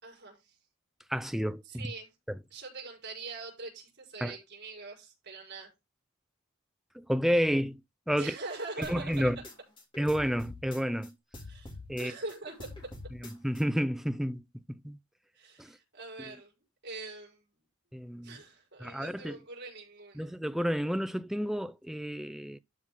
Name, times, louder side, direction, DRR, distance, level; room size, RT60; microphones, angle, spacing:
voice 1, 0.0-0.5 1.6-2.1 2.5-5.7 8.2-9.3 11.5-11.7 12.0-12.7 15.3-16.5 16.8-17.4 18.2-20.3, right 3 dB, 55° right, 5.1 m, -43 dB
voice 2, 1.1-1.9 4.2-4.4 7.0-7.8 8.1-8.3 8.9-9.4 10.0-11.1 11.9-12.1 13.4-14.4 14.7-15.0 15.6-15.7 17.9-18.4 18.8-19.4 20.2-22.6, equal, ahead, 0.6 m, -30 dB
sound 1, 8.8-11.1 11.3-13.6, left 2 dB, 25° left, 3.0 m, -45 dB
12.5 x 5.9 x 3.8 m
head